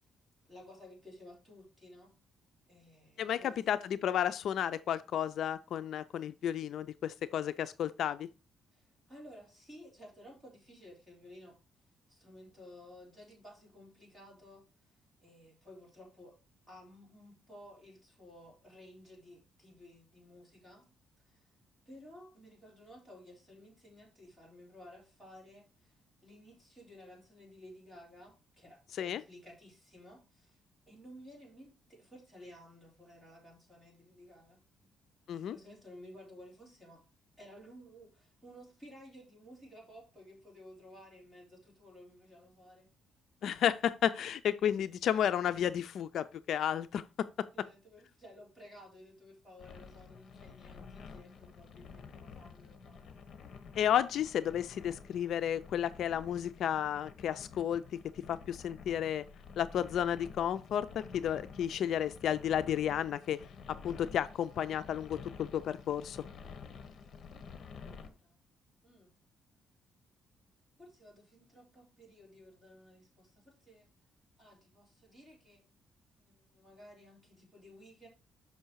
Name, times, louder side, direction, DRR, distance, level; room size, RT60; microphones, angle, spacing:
voice 1, 0.5-2.1 2.7-3.7 8.7-11.6 12.1-14.6 15.2-16.4 16.7-20.9 21.2-21.5 21.9-30.6 30.9-34.9 35.5-37.0 37.4-42.9 47.5-53.1 67.4-68.4 68.8-69.1 70.8-73.9 74.4-75.6 76.2-78.1, left 1 dB, 5° right, 3.7 m, -55 dB
voice 2, 3.2-8.3 29.0-29.2 35.3-35.6 43.4-47.3 53.8-57.8 58.3-59.2 59.6-60.9 61.1-63.4 63.8-66.2, left 10 dB, 65° left, 0.4 m, -32 dB
sound 1, 49.6-68.1, left 5 dB, 50° left, 1.1 m, -50 dB
6.6 x 5.5 x 4.6 m
cardioid pair, 135°, 0 cm